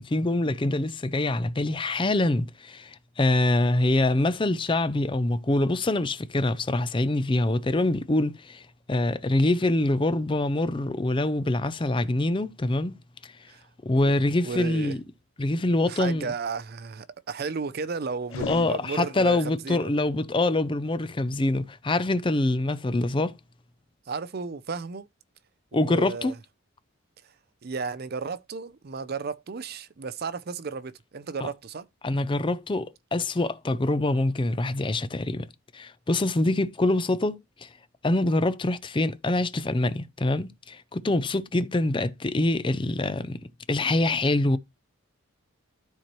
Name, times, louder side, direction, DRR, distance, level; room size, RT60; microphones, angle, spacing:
voice 1, 0.0-13.0 13.2-13.3 13.8-15.0 15.4-16.3 18.5-23.3 25.7-26.3 32.0-35.5 35.7-37.7 38.0-43.4 43.7-44.6, left 2 dB, 25° left, 0.5 m, -25 dB
voice 2, 14.4-15.0 15.9-19.9 24.1-25.1 25.7-26.4 27.2-27.3 27.6-31.9, right 4 dB, 45° right, 0.5 m, -34 dB
sound 1, 18.2-19.5, left 5 dB, 75° left, 0.5 m, -38 dB
13.0 x 4.4 x 3.0 m
head